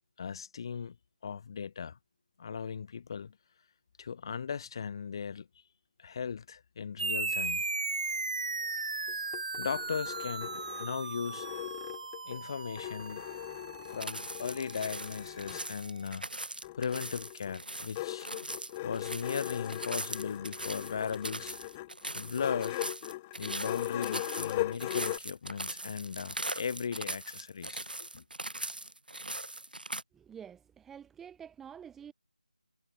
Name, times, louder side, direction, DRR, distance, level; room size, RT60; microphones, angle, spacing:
voice 1, 0.2-1.0 1.2-2.0 2.4-3.4 4.0-5.5 6.0-7.6 9.6-11.5 12.3-13.2 13.9-16.3 16.7-18.3 18.8-21.6 22.1-22.8 23.4-27.9 28.1-28.2, left 6 dB, 30° left, 6.9 m, -37 dB
sound 1, 7.0-15.9, right 3 dB, 55° right, 1.8 m, -37 dB
sound 2, 9.1-12.4 12.8-15.7 16.6-25.2, left 18 dB, 15° left, 1.9 m, -39 dB
sound 3, 13.8-30.0, right 2 dB, 90° right, 2.8 m, -40 dB
voice 2, 30.1-32.1, right 8 dB, 5° right, 4.8 m, -48 dB
figure-of-eight pair, 165°, 5 cm